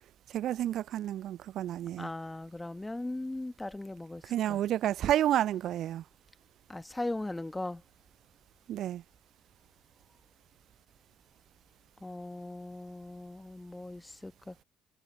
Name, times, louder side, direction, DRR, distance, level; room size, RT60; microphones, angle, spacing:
voice 1, 0.3-2.1 4.2-6.0 8.7-9.0, right 12 dB, 55° right, 0.4 m, -30 dB
voice 2, 2.0-4.2 4.5-4.6 6.7-7.8 12.0-14.5, left 2 dB, 15° left, 1.3 m, -38 dB
figure-of-eight pair, 50°, 0 cm